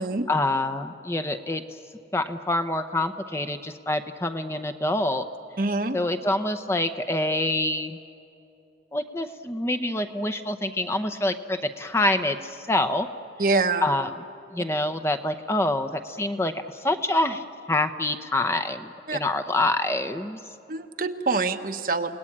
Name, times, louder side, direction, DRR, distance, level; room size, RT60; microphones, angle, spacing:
voice 1, 0.3-1.6 2.1-5.2 5.9-8.0 8.9-13.1 13.8-14.1 14.5-20.4, left 2 dB, 15° left, 8 dB, 0.8 m, -26 dB
voice 2, 5.6-6.0 13.4-13.9 19.1-19.2 20.7-22.2, right 3 dB, 50° right, 7 dB, 1.1 m, -25 dB
29.5 x 18.5 x 8.8 m, 2.6 s
head